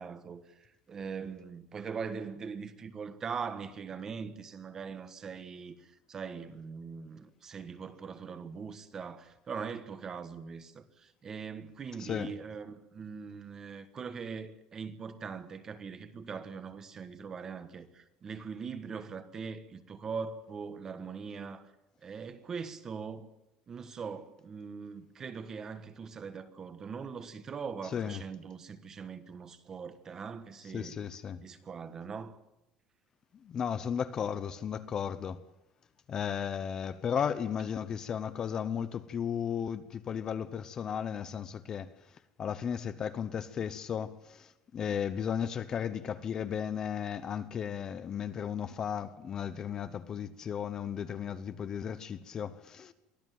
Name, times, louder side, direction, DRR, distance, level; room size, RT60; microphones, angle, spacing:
voice 1, 0.0-21.7 22.0-23.3 23.7-31.0 31.4-32.4, right 5 dB, 20° right, 1.3 m, -41 dB
voice 2, 12.0-12.3 27.9-28.2 30.7-31.5 33.4-35.4 36.1-41.9 42.4-52.9, left 8 dB, 25° left, 0.8 m, -35 dB
23.5 x 15.5 x 9.3 m
cardioid pair, 180°, 2 cm